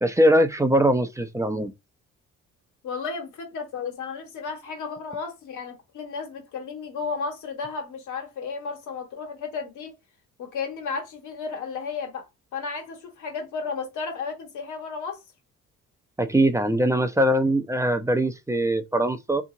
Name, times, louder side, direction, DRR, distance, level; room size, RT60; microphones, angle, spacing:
voice 1, 0.0-1.7 16.2-19.4, right 1 dB, 10° right, 0.4 m, -21 dB
voice 2, 2.8-9.9 10.4-12.3 12.5-15.2, left 5 dB, 80° left, 1.4 m, -33 dB
3.5 x 2.8 x 2.6 m
cardioid pair, 90°, 30 cm